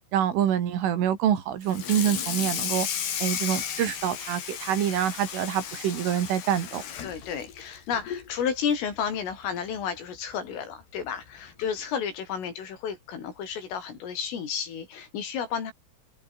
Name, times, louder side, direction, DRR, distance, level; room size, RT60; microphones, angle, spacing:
voice 1, 0.1-2.9 3.2-6.8, right 10 dB, 75° right, 5.3 m, -26 dB
Water tap faucet / Sink (filling or washing), 1.6-8.3 8.7-8.9 9.3-9.4 9.8-9.9 11.0-11.1 11.6-11.8, left 8 dB, 60° left, 5.1 m, -34 dB
voice 2, 7.0-15.7, left 7 dB, 80° left, 7.3 m, -32 dB
open air
omnidirectional pair, 5.7 m